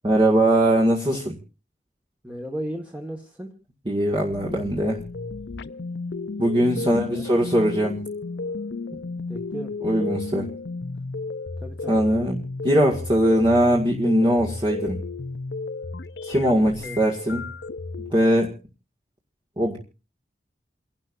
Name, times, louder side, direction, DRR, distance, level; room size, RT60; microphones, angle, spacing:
voice 1, 0.0-1.4 3.9-5.0 6.4-8.0 8.9-9.0 9.8-10.5 11.9-15.0 16.2-17.5 18.1-18.5 19.6-19.8, right 1 dB, 25° right, -1 dB, 2.0 m, -21 dB
voice 2, 2.2-3.5 6.8-7.2 9.3-9.7 11.6-12.3 16.8-17.0, equal, 10° right, 0 dB, 1.6 m, -35 dB
sound 1, 4.3-18.1, left 3 dB, 70° left, 0.6 m, -33 dB
29.5 x 12.0 x 2.6 m, 0.34 s
head